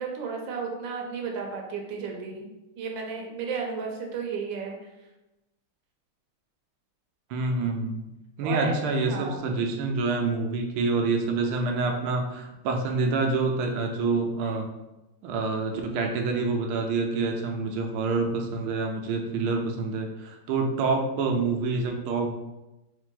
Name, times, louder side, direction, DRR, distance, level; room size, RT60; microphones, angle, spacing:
voice 1, 0.0-2.5 2.8-4.8 8.4-8.7 9.0-9.5, right 5 dB, 70° right, 1 dB, 1.4 m, -33 dB
voice 2, 7.3-8.1 8.4-14.7 15.2-22.3, right 3 dB, 85° right, 3 dB, 1.6 m, -27 dB
3.6 x 3.4 x 3.7 m, 0.99 s
omnidirectional pair, 2.3 m